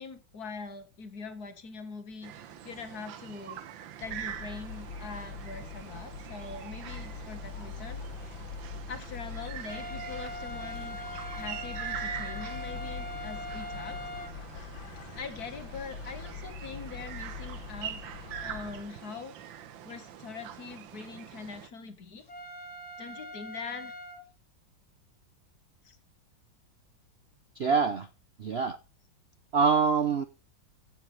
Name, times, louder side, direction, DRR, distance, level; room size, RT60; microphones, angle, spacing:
voice 1, 0.0-3.6 4.0-8.0 8.9-11.0 11.3-14.0 15.2-18.0 18.4-19.6 19.8-22.3 23.0-24.0 25.8-26.0, left 4 dB, 55° left, 2.0 m, -43 dB
sound 1, 2.2-21.7, right 10 dB, 90° right, 1.6 m, -44 dB
sound 2, 4.0-18.8, left 5 dB, 85° left, 1.6 m, -43 dB
sound 3, 9.7-14.3 22.3-24.2, left 1 dB, 35° left, 2.5 m, -42 dB
voice 2, 27.6-28.1 28.4-28.8 29.5-30.2, right 5 dB, 55° right, 0.7 m, -25 dB
15.5 x 7.4 x 3.3 m
omnidirectional pair, 2.0 m